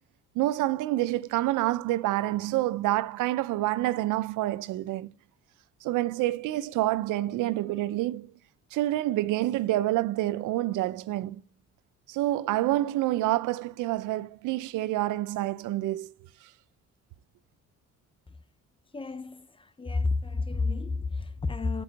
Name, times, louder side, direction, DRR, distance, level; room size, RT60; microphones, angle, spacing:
voice 1, 0.4-5.1 5.8-8.3 8.7-11.4 12.1-16.1, right 16 dB, 90° right, 0.6 m, -27 dB
voice 2, 18.9-21.8, left 3 dB, 20° left, 0.6 m, -30 dB
7.0 x 4.6 x 4.0 m
cardioid pair, 90°, 30 cm